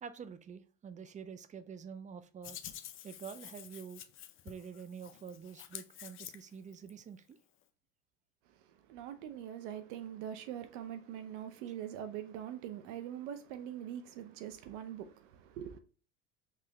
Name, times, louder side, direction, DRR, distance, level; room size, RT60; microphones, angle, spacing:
voice 1, 0.0-2.6 3.0-4.0 4.4-7.4, right 7 dB, 20° right, 0.4 m, -47 dB
Hands, 2.4-6.9, left 11 dB, 35° left, 0.5 m, -49 dB
voice 2, 8.5-15.8, right 10 dB, 70° right, 0.6 m, -43 dB
3.8 x 3.2 x 2.8 m
hypercardioid pair, 85°, 36 cm